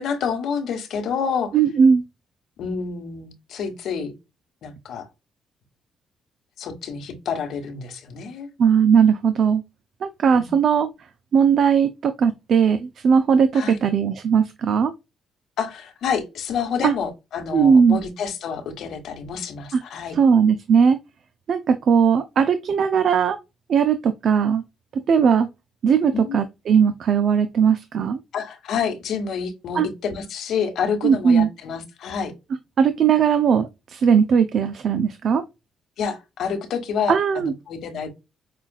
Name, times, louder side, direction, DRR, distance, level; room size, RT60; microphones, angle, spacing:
voice 1, 0.0-1.6 2.6-4.1 4.6-5.1 6.6-8.5 10.3-10.6 13.5-13.8 15.6-20.2 26.1-26.4 28.3-32.3 36.0-38.1, left 6 dB, 75° left, 1.3 m, -28 dB
voice 2, 1.5-2.0 8.6-9.6 10.0-10.9 11.3-14.9 16.8-16.9 17.5-18.0 19.7-19.8 20.1-21.0 21.5-23.4 23.7-24.6 25.1-25.5 25.8-28.2 29.7-29.9 31.0-31.5 32.8-35.4 37.1-37.5, right 6 dB, 60° right, 0.5 m, -18 dB
5.7 x 2.4 x 2.3 m
cardioid pair, 90°, 0 cm